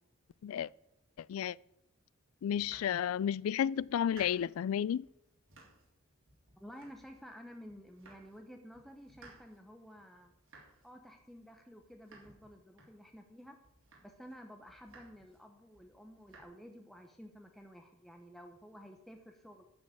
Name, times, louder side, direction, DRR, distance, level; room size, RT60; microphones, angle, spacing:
voice 1, 1.2-1.6 2.4-5.1, left 9 dB, 80° left, 0.3 m, -32 dB
Domestic sounds home sounds, 2.4-3.4 3.8-4.7 5.0-6.0 6.3-7.4 7.7-8.5 8.7-13.3 13.6-14.3 14.7-15.4 15.7-16.4, right 3 dB, 65° right, 4.0 m, -59 dB
voice 2, 6.6-10.3 10.8-13.6 14.0-19.6, equal, ahead, 0.8 m, -52 dB
12.5 x 5.4 x 8.6 m
head